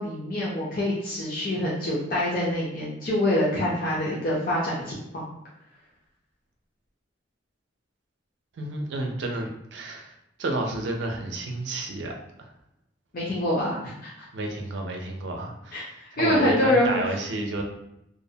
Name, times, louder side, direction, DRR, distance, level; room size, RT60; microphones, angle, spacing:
voice 1, 0.0-5.3 13.1-14.1 15.7-15.9 16.2-17.0, left 1 dB, 50° left, -6 dB, 0.5 m, -25 dB
voice 2, 8.6-10.1 10.4-12.5 14.3-17.6, right 2 dB, 65° right, 2 dB, 0.4 m, -31 dB
2.5 x 2.0 x 2.7 m, 0.83 s
head